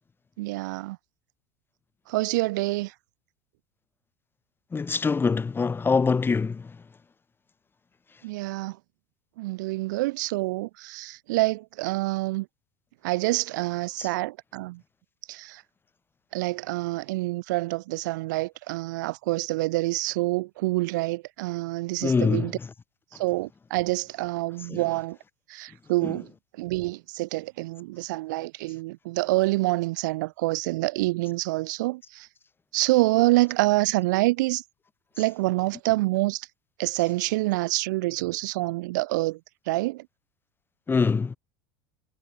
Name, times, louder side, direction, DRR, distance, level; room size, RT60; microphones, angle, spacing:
voice 1, 0.4-1.0 2.1-2.9 8.2-8.8 9.4-12.5 13.0-14.8 15.3-15.6 16.3-22.5 23.2-25.2 25.5-26.3 26.6-32.3 32.7-34.6 35.2-36.5 36.8-39.4 39.7-40.0, right 20 dB, 65° right, 4.4 m, -27 dB
voice 2, 4.7-6.6 14.0-14.1 22.0-22.7 24.7-24.8 40.9-41.4, left 4 dB, 20° left, 2.8 m, -24 dB
figure-of-eight pair, 75°, 11 cm